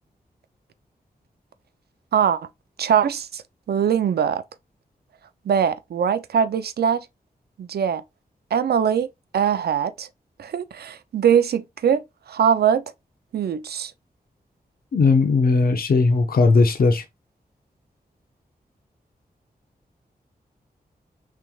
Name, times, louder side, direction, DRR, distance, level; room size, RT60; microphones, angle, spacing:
voice 1, 2.8-3.4 3.7-4.4 5.5-7.1 7.6-8.0 8.5-9.1 9.3-10.1 10.4-12.0 12.3-12.8 13.3-13.9, right 8 dB, 90° right, 0.5 m, -21 dB
voice 2, 14.9-17.0, left 4 dB, 70° left, 0.9 m, -18 dB
6.0 x 3.3 x 2.3 m
wide cardioid pair, 110°, 16 cm